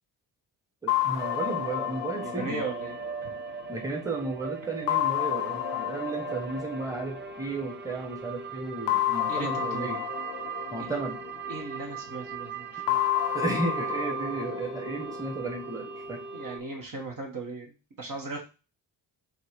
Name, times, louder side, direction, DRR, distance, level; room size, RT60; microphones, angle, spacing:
voice 1, 0.8-2.6 3.7-10.0 10.7-11.2 13.3-16.2, right 2 dB, 5° right, 3 dB, 1.3 m, -34 dB
sound 1, 0.9-4.2 4.9-7.8 8.9-12.0 12.9-16.0, left 15 dB, 70° left, 0.5 m, -31 dB
sound 2, 1.2-16.6, right 6 dB, 25° right, 0.5 m, -38 dB
voice 2, 2.2-3.3 9.3-10.0 10.8-11.0 11.5-13.0 16.3-18.4, right 3 dB, 45° right, 0 dB, 1.5 m, -38 dB
4.0 x 2.5 x 4.7 m, 0.32 s
hypercardioid pair, 40°, 48 cm